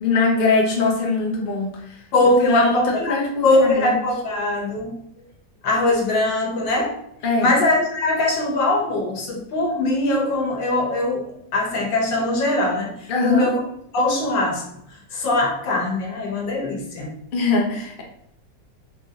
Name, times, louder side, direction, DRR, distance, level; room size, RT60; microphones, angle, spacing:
voice 1, 0.0-2.0 2.4-4.0 7.2-7.5 13.1-13.5 17.3-18.0, left 3 dB, 45° left, -1 dB, 0.6 m, -22 dB
voice 2, 2.1-3.2 3.4-4.9 5.6-6.9 7.4-11.3 11.5-13.6 13.9-14.6 15.1-17.1, left 2 dB, 85° left, 0 dB, 1.7 m, -21 dB
3.9 x 2.7 x 3.6 m, 0.74 s
omnidirectional pair, 2.0 m